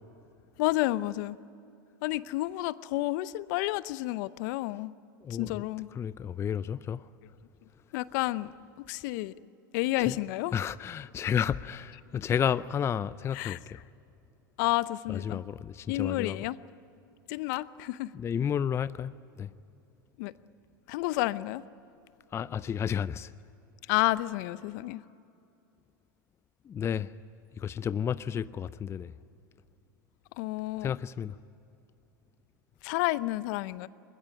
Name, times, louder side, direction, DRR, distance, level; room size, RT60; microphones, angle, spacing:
voice 1, 0.6-1.4 2.0-4.9 5.3-5.9 7.9-8.5 8.8-9.3 9.7-10.6 13.3-13.6 14.6-15.4 15.9-16.6 17.3-18.1 20.2-20.3 20.9-21.6 23.9-25.0 30.4-30.9 32.8-33.9, left 18 dB, 60° left, 0.7 m, -30 dB
voice 2, 5.2-5.6 6.0-7.0 10.1-10.2 10.5-13.8 15.1-16.4 18.1-19.1 19.4-19.5 22.3-23.3 26.7-27.1 27.6-29.1 30.8-31.3, left 8 dB, 25° left, 0.5 m, -31 dB
21.5 x 21.0 x 10.0 m
hypercardioid pair, 100°, 11 cm